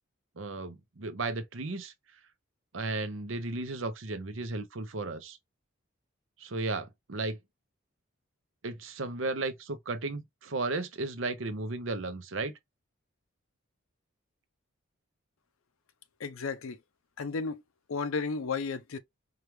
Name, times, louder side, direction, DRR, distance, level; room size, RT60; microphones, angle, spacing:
voice 1, 0.4-1.9 2.7-5.4 6.4-7.4 8.6-12.5, right 3 dB, 70° right, 0.8 m, -34 dB
voice 2, 16.2-16.8 17.2-17.6 17.9-19.0, left 4 dB, 85° left, 0.6 m, -33 dB
4.8 x 2.4 x 3.1 m
head